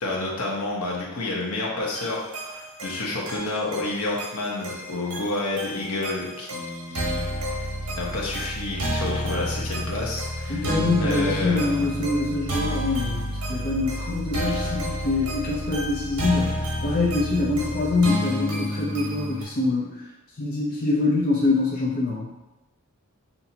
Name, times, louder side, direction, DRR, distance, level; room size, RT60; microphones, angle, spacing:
voice 1, 0.0-7.3 7.9-10.6 11.0-11.9, left 2 dB, 70° left, -3 dB, 1.0 m, -29 dB
sound 1, 1.9-19.4, right 1 dB, 80° right, 1.1 m, -30 dB
voice 2, 10.5-20.0 20.4-22.3, left 3 dB, 40° left, -5 dB, 0.7 m, -25 dB
5.8 x 2.7 x 2.8 m, 1.0 s
head